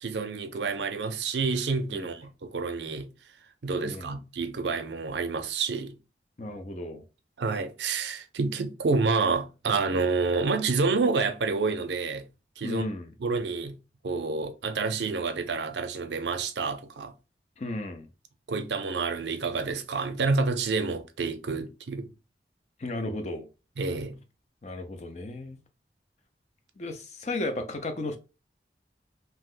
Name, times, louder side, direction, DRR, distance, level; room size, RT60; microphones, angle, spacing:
voice 1, 0.0-3.1 3.6-6.0 7.4-12.3 12.6-12.8 13.2-13.8 14.0-17.1 18.5-22.1 23.8-24.2, right 4 dB, 80° right, 0.5 m, -28 dB
voice 2, 3.8-4.2 6.4-7.0 12.6-13.1 17.6-18.1 22.8-23.5 24.6-25.6 26.8-28.2, left 2 dB, 40° left, 0.5 m, -34 dB
2.7 x 2.0 x 3.6 m
head